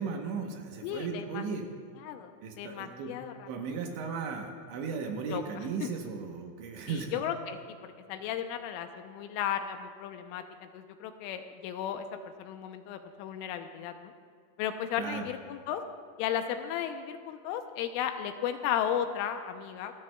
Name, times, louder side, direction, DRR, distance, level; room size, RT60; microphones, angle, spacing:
voice 1, 0.0-1.6 2.4-3.1 3.5-7.1 15.0-15.3, right 5 dB, 75° right, 2 dB, 3.0 m, -36 dB
voice 2, 0.8-1.5 2.0-2.3 2.6-3.7 5.3-5.9 6.9-7.6 8.1-12.1 12.4-14.1 14.6-15.8 16.2-19.9, left 9 dB, 80° left, 7 dB, 3.1 m, -35 dB
28.0 x 14.0 x 2.3 m, 2.1 s
omnidirectional pair, 5.9 m